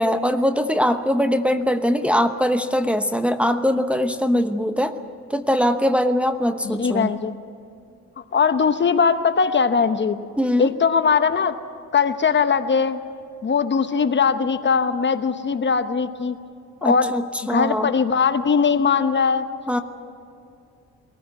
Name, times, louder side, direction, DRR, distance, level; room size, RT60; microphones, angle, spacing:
voice 1, 0.0-4.9 5.3-7.1 10.4-10.7 16.8-17.9 19.7-19.8, equal, 5° right, 6 dB, 1.0 m, -21 dB
voice 2, 6.6-7.3 8.3-10.2 10.6-11.6 11.9-13.0 13.4-16.4 16.8-17.1 17.5-19.5, left 6 dB, 40° left, 10 dB, 1.0 m, -20 dB
22.5 x 15.0 x 9.3 m, 2.5 s
cardioid pair, 90°, 30 cm